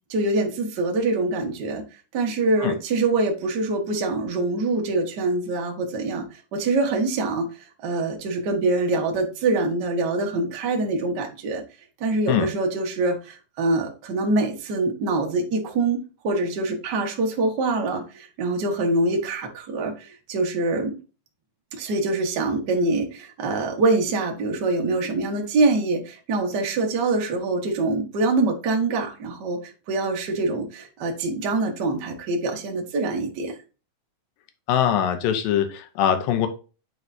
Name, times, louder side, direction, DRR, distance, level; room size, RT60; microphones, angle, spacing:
voice 1, 0.1-1.8 2.1-7.5 7.8-11.6 12.0-21.0 21.7-29.6 29.9-33.5, right 2 dB, 55° right, 2 dB, 1.1 m, -24 dB
voice 2, 34.7-36.5, left 9 dB, 85° left, 8 dB, 2.6 m, -22 dB
9.6 x 4.6 x 2.7 m, 0.33 s
omnidirectional pair, 3.9 m